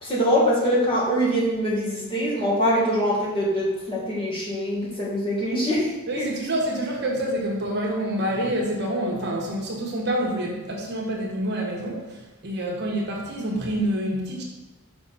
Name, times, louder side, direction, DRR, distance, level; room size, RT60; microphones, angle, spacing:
voice 1, 0.0-6.3, equal, 25° left, -6 dB, 1.7 m, -23 dB
voice 2, 6.1-14.4, right 1 dB, 50° right, -1 dB, 1.3 m, -27 dB
6.0 x 5.6 x 4.1 m, 1.1 s
head